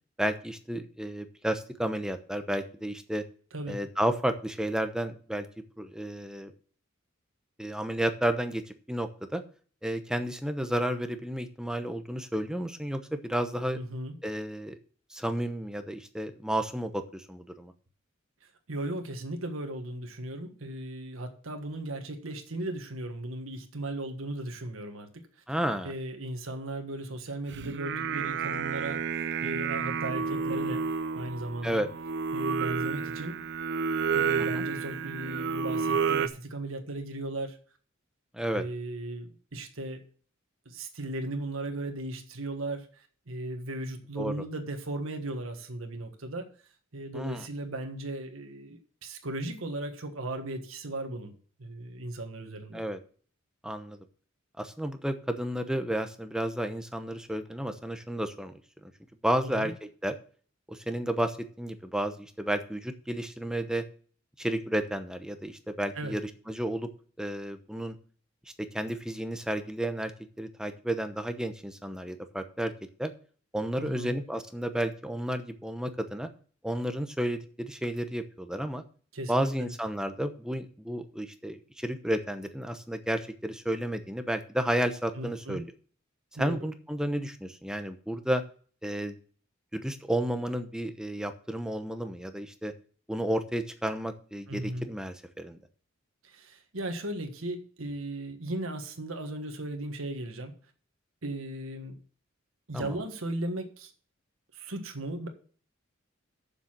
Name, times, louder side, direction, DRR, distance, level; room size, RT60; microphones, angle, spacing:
voice 1, 0.2-3.2 3.7-5.5 5.8-6.5 7.6-8.6 8.9-9.4 9.8-13.8 14.2-14.8 15.1-17.7 25.5-25.9 31.6-31.9 34.4-34.7 38.3-38.6 44.2-44.3 47.1-47.4 52.7-53.0 53.6-54.0 54.6-58.5 58.8-58.9 59.2-59.7 60.0-60.1 60.7-63.8 64.4-66.2 66.5-66.9 67.2-68.0 68.6-70.1 70.4-72.7 73.0-73.1 73.5-76.3 76.6-78.8 79.3-85.6 86.4-88.4 88.8-89.2 89.7-92.7 93.1-95.6 102.7-102.9, right 1 dB, 5° right, 8 dB, 0.9 m, -32 dB
voice 2, 13.7-14.2 18.4-25.3 25.8-31.8 32.3-33.4 34.1-37.6 38.5-40.0 40.6-46.5 46.9-52.8 59.4-59.7 65.9-66.2 73.8-74.1 79.1-79.7 85.1-85.6 86.3-86.7 94.5-94.9 96.2-100.5 101.2-102.0 102.7-103.9 104.5-105.3, right 1 dB, 85° right, 5 dB, 1.5 m, -37 dB
Singing, 27.5-36.3, right 6 dB, 60° right, 0.6 m, -30 dB
7.2 x 6.8 x 7.4 m, 0.43 s
head